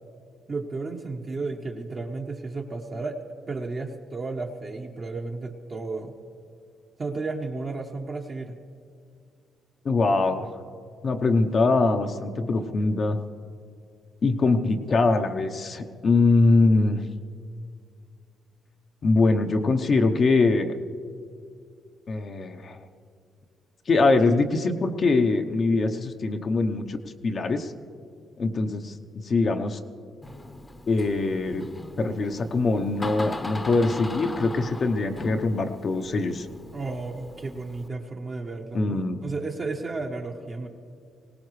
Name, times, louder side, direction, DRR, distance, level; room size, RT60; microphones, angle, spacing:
voice 1, 0.5-3.2 3.5-6.1 7.0-8.6 36.7-40.7, right 3 dB, 40° right, 0 dB, 1.1 m, -33 dB
voice 2, 9.8-10.5 11.0-13.2 14.2-17.0 19.0-20.8 22.1-22.8 23.9-27.0 27.2-27.7 28.4-29.8 30.9-31.7 32.0-36.5 38.7-39.2, left 3 dB, 45° left, 5 dB, 0.8 m, -23 dB
Door, 30.2-37.9, left 1 dB, 20° left, 0.9 m, -39 dB
21.0 x 18.0 x 3.2 m, 2.3 s
cardioid pair, 90°, 0 cm